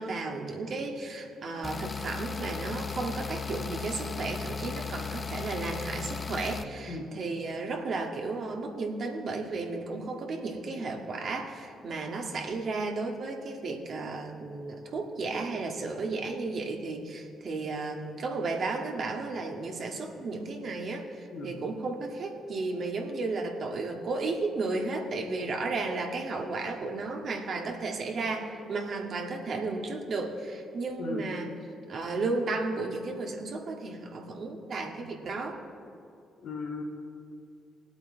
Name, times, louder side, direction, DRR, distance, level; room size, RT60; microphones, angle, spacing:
voice 1, 0.0-31.5 31.9-35.6, right 3 dB, 60° right, 1 dB, 2.0 m, -34 dB
sound 1, 1.6-6.6, left 5 dB, 35° left, 0.8 m, -36 dB
voice 2, 36.4-36.8, left 3 dB, 70° left, 0 dB, 2.9 m, -36 dB
20.5 x 8.4 x 4.0 m, 2.5 s
hypercardioid pair, 50°, 0 cm